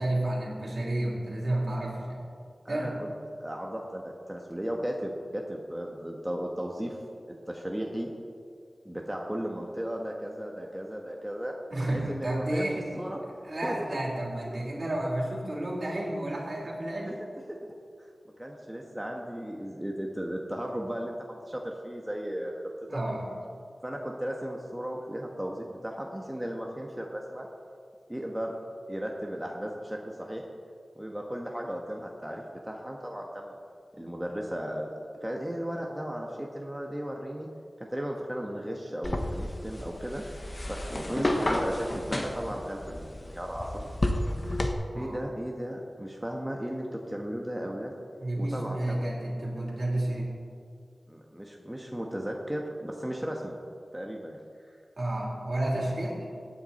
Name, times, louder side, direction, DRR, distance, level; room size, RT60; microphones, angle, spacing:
voice 1, 0.0-2.2 2.7-2.9 11.7-12.9 13.4-17.2 22.9-23.3 44.9-45.2 48.2-50.3 55.0-56.2, right 1 dB, 55° right, -3 dB, 3.4 m, -31 dB
voice 2, 2.6-3.1 3.4-7.0 7.5-8.1 8.8-11.5 11.9-12.7 12.9-13.2 13.6-14.0 14.5-14.6 17.0-17.2 17.5-17.6 18.4-22.5 22.9-23.0 23.8-27.5 28.1-28.6 28.9-30.4 30.9-33.6 34.0-34.9 35.2-37.5 37.8-40.2 40.7-43.9 44.9-47.9 48.4-49.1 51.1-53.6 53.9-54.4, equal, 10° right, 0 dB, 1.3 m, -35 dB
sound 1, 39.0-44.7, left 1 dB, 35° left, 1.2 m, -31 dB
17.0 x 9.4 x 4.3 m, 2.2 s
wide cardioid pair, 60°, 0 cm